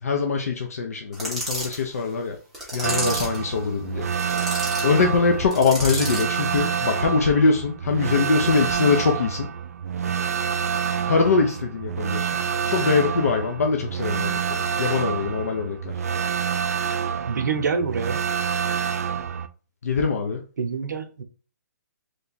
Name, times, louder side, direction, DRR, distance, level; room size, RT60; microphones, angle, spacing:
voice 1, 0.0-2.4 2.7-4.1 4.8-9.5 11.1-12.4 12.7-15.9 19.8-20.4, left 4 dB, 55° left, 0.6 m, -23 dB
sound 1, 1.1-1.8 2.5-3.4 4.1-4.9 5.5-6.3, right 1 dB, ahead, 0.7 m, -31 dB
sound 2, 2.8-19.5, right 7 dB, 55° right, 0.3 m, -27 dB
voice 2, 17.3-18.2 20.6-21.2, right 5 dB, 80° right, 0.7 m, -26 dB
3.2 x 2.3 x 3.9 m
hypercardioid pair, 175°, 9 cm